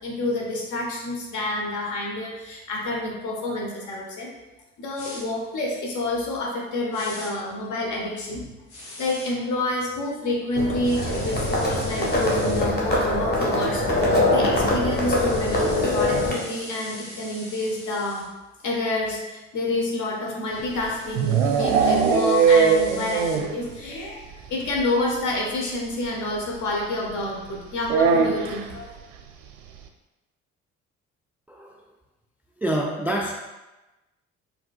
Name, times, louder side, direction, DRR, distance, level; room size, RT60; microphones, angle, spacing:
voice 1, 0.0-4.3 4.8-8.5 9.0-18.2 18.6-24.2 24.5-28.9, left 2 dB, 50° left, -1 dB, 1.1 m, -28 dB
sound 1, 5.0-5.2 6.9-7.3 8.7-9.3 10.8-12.7 14.7-18.3 20.4-23.4, left 1 dB, 70° left, 1.3 m, -41 dB
Livestock farm animals working animals, 10.6-16.3, left 1 dB, 25° left, 1.2 m, -23 dB
sound 2, 20.6-23.7 23.9-24.0 24.3-24.4 24.7-24.8 26.0-26.1 27.8-28.7, right 6 dB, 65° right, 0.5 m, -20 dB
voice 2, 31.5-31.8 32.6-33.3, right 1 dB, 5° right, 0 dB, 0.3 m, -26 dB
4.8 x 3.0 x 2.3 m, 1.1 s
figure-of-eight pair, 45°, 38 cm